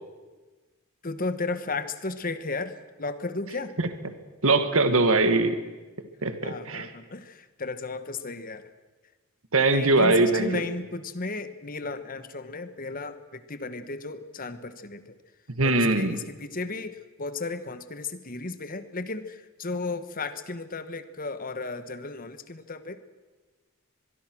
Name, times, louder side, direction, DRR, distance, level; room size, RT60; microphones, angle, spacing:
voice 1, 1.0-3.7 6.4-8.7 9.7-15.0 15.6-23.0, left 3 dB, 40° left, 11 dB, 1.3 m, -34 dB
voice 2, 4.4-5.6 6.2-6.9 9.5-10.6 15.6-16.2, right 2 dB, 70° right, 9 dB, 1.9 m, -22 dB
24.0 x 22.0 x 6.3 m, 1.3 s
head